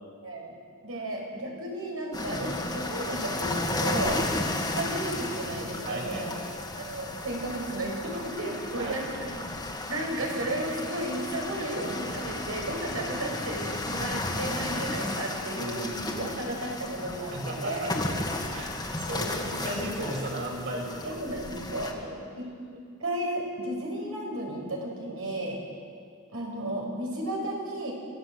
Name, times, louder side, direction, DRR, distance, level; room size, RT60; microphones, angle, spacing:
voice 1, 0.2-0.6 0.8-4.2 4.7-6.4 6.7-9.3 9.9-15.9 16.1-17.3 17.6-17.9 21.0-21.9 22.4-22.5 23.0-25.6 26.3-27.9, right 1 dB, 70° right, -1 dB, 6.1 m, -33 dB
sound 1, 2.1-21.9, left 2 dB, 20° left, 2.2 m, -34 dB
voice 2, 5.8-6.5 8.1-8.9 15.5-16.3 17.3-18.0 18.5-21.2 21.8-22.2, right 1 dB, 55° right, -3 dB, 7.3 m, -36 dB
26.5 x 17.0 x 8.1 m, 2.3 s
head